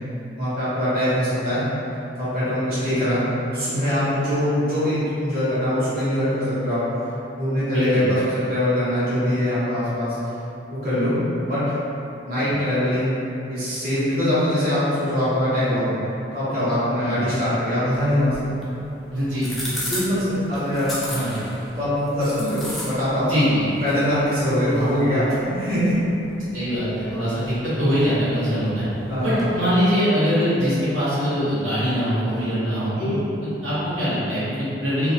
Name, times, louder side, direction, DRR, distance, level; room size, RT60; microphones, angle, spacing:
voice 1, 0.4-1.6 2.2-3.2 3.5-6.8 7.3-10.2 10.8-11.1 11.4-11.7 12.2-13.1 13.5-15.9 16.3-18.5 19.9-20.9 21.8-23.4 23.8-25.9 29.1-29.5 32.9-33.2, equal, 50° right, -13 dB, 0.9 m, -22 dB
voice 2, 7.7-8.1 12.4-12.5 17.0-17.2 19.1-19.6 20.5-20.6 21.1-21.4 22.4-22.5 23.2-23.6 26.5-28.8 29.2-33.2 33.6-35.1, equal, 90° right, -12 dB, 0.9 m, -23 dB
sound 1, 17.9-29.6, left 1 dB, ahead, 0.4 m, -37 dB
2.6 x 2.1 x 2.7 m, 2.9 s
head